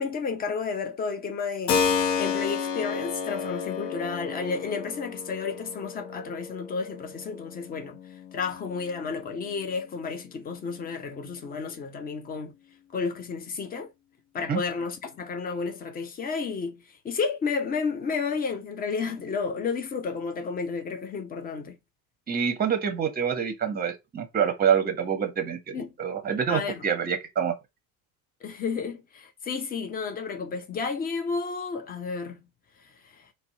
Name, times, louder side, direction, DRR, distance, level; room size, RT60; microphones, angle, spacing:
voice 1, 0.0-1.9 2.2-8.0 8.3-12.5 12.9-13.9 14.3-16.8 17.0-21.8 25.7-25.9 26.5-26.8 28.4-32.4, left 5 dB, 20° left, 0.4 m, -31 dB
Keyboard (musical), 1.7-10.3, left 6 dB, 65° left, 0.6 m, -32 dB
voice 2, 22.3-25.7 26.0-27.6, right 7 dB, 20° right, 0.7 m, -26 dB
2.5 x 2.0 x 2.6 m
figure-of-eight pair, 55°, 50 cm